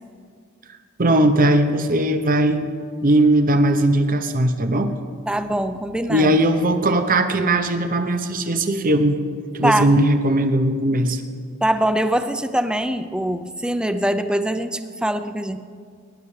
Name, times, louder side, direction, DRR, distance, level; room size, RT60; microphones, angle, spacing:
voice 1, 1.0-2.7 3.0-4.9 6.1-9.2 9.5-11.2, right 1 dB, 45° right, 8 dB, 0.8 m, -18 dB
voice 2, 5.3-6.4 9.6-9.9 11.6-15.6, right 1 dB, 5° right, 9 dB, 0.5 m, -23 dB
22.0 x 11.0 x 3.3 m, 2.2 s
head